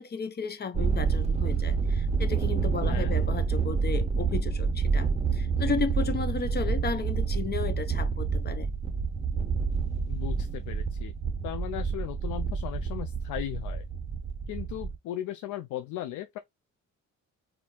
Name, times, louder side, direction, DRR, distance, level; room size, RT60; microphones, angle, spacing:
voice 1, 0.0-8.7, left 5 dB, 35° left, 0.7 m, -34 dB
Thunder, 0.7-15.0, right 5 dB, 20° right, 1.1 m, -28 dB
voice 2, 10.1-11.1 11.4-13.8 14.5-16.4, left 13 dB, 90° left, 0.5 m, -37 dB
4.3 x 2.7 x 2.3 m
cardioid pair, 90°, 30 cm